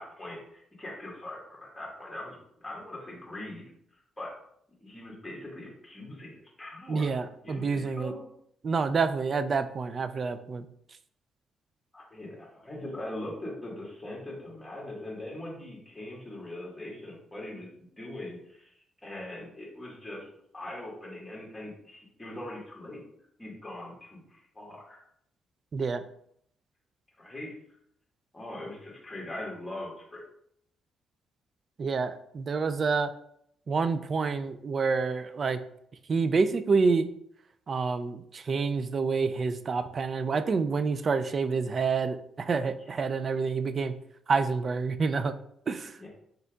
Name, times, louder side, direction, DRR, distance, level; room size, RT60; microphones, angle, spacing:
voice 1, 0.0-4.3 4.8-6.3 6.6-8.2 11.9-20.3 20.5-23.0 23.4-25.0 27.2-27.5 28.3-30.2 46.0-46.1, left 1 dB, 10° left, -3 dB, 1.6 m, -41 dB
voice 2, 6.9-8.1 8.6-10.7 25.7-26.0 31.8-33.1 33.7-35.6 36.1-37.1 37.7-43.9 44.3-45.4 45.7-46.1, right 4 dB, 45° right, 11 dB, 0.3 m, -28 dB
4.2 x 3.9 x 2.3 m, 0.70 s
cardioid pair, 90°, 0 cm